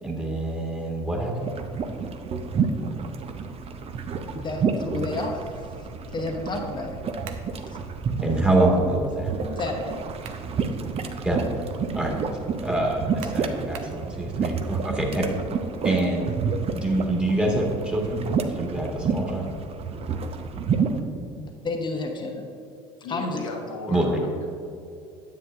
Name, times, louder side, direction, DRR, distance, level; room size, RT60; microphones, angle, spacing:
voice 1, 0.0-1.5 8.2-9.3 11.2-11.5 11.9-12.2 12.6-15.3 15.8-16.3 16.7-18.2 18.5-19.5 23.9-24.2, right 2 dB, 5° right, -1 dB, 1.6 m, -25 dB
sound 1, 1.4-21.0, right 5 dB, 35° right, 0.7 m, -30 dB
voice 2, 4.3-5.5 6.1-7.0 7.7-7.8 9.6-10.0 21.4-22.5 23.1-23.4, left 2 dB, 30° left, 2 dB, 1.1 m, -31 dB
sound 2, 7.2-7.5 9.9-10.5 11.0-11.1 13.2-14.0, right 8 dB, 80° right, 0.7 m, -43 dB
voice 3, 23.0-24.5, left 3 dB, 85° left, -1 dB, 1.3 m, -36 dB
9.6 x 7.7 x 2.5 m, 2.6 s
hypercardioid pair, 75°, 16 cm